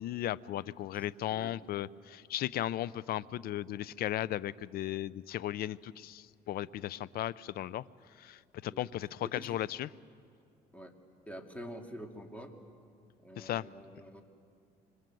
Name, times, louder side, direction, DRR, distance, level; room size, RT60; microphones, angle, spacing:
voice 1, 0.0-7.8 8.2-9.9 13.4-13.7, left 13 dB, 65° left, 20 dB, 0.6 m, -36 dB
voice 2, 1.3-1.6 8.7-8.9 9.2-9.6 10.7-10.9 11.3-12.5 13.2-14.2, equal, 10° left, 4 dB, 2.4 m, -46 dB
26.0 x 25.0 x 7.8 m, 2.3 s
cardioid pair, 110°, 17 cm